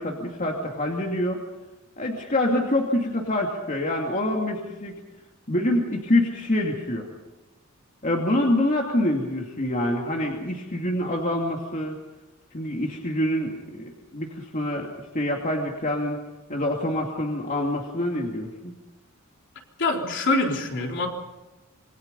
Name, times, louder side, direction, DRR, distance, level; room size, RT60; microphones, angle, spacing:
voice 1, 0.0-1.4 2.0-5.0 5.5-7.1 8.0-11.9 12.5-14.9 15.1-16.2 16.5-18.7, left 1 dB, 35° left, 0 dB, 2.5 m, -26 dB
voice 2, 19.8-21.1, left 2 dB, 55° left, 1 dB, 3.9 m, -24 dB
27.0 x 22.5 x 5.4 m, 1.1 s
head